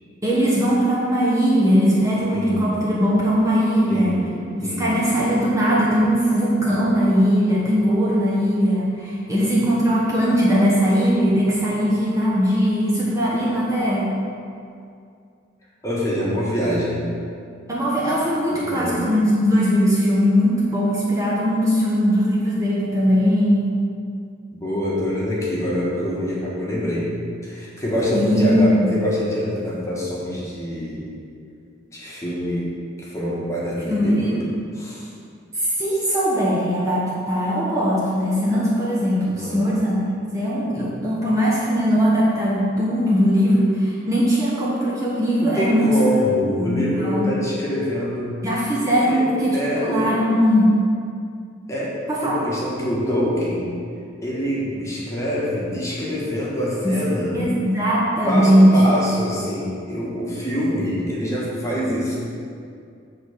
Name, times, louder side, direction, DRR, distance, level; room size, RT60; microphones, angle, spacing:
voice 1, 0.2-4.2 4.5-14.1 17.7-23.7 28.1-29.0 33.9-34.5 35.5-40.0 40.3-45.9 46.6-47.3 48.4-50.8 52.1-52.4 56.8-57.0 57.3-58.8, equal, 15° right, -7 dB, 1.0 m, -19 dB
voice 2, 2.3-2.7 3.9-4.3 4.6-4.9 15.8-17.0 18.5-19.0 24.5-27.1 27.4-31.1 31.9-32.7 33.0-34.4 34.7-35.1 39.3-39.7 45.4-48.3 49.1-50.1 51.7-51.9 52.2-53.7 54.2-57.4 58.3-62.2, equal, 15° left, -6 dB, 1.4 m, -25 dB
7.8 x 3.9 x 6.5 m, 2.4 s
head